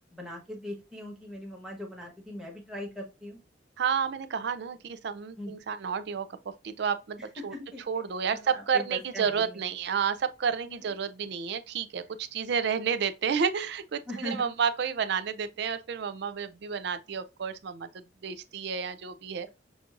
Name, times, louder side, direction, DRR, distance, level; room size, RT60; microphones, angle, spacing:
voice 1, 0.1-3.4 5.4-5.5 7.4-7.8 8.3-9.6 10.6-10.7 14.1-14.5, equal, 5° right, 1.1 m, -40 dB
voice 2, 3.8-6.3 6.6-7.5 7.9-17.9 18.2-19.5, right 6 dB, 65° right, 0.4 m, -30 dB
6.0 x 2.5 x 2.5 m
head